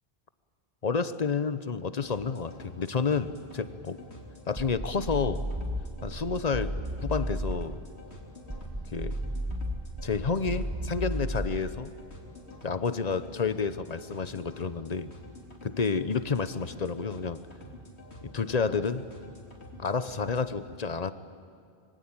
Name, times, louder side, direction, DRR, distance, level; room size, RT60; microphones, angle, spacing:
voice 1, 0.8-4.0 4.5-5.4 6.0-6.7 7.0-7.8 8.9-9.2 10.0-11.9 12.6-15.1 15.6-17.4 18.3-19.0 19.8-21.1, left 5 dB, 40° left, 13 dB, 1.0 m, -30 dB
sound 1, 1.9-20.4, left 1 dB, 85° left, 3.5 m, -48 dB
sound 2, 4.6-7.8 8.5-11.8, equal, 15° right, 1.4 m, -34 dB
25.5 x 23.5 x 8.9 m, 2.3 s
omnidirectional pair, 1.1 m